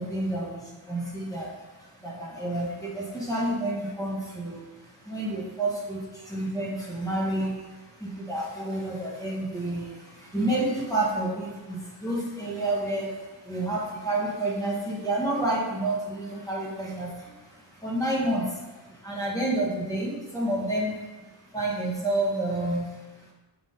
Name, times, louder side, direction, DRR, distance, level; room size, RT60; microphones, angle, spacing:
voice 1, 0.0-23.3, right 1 dB, 10° left, -6 dB, 1.6 m, -30 dB
6.3 x 3.8 x 4.0 m, 1.2 s
wide cardioid pair, 95°, 41 cm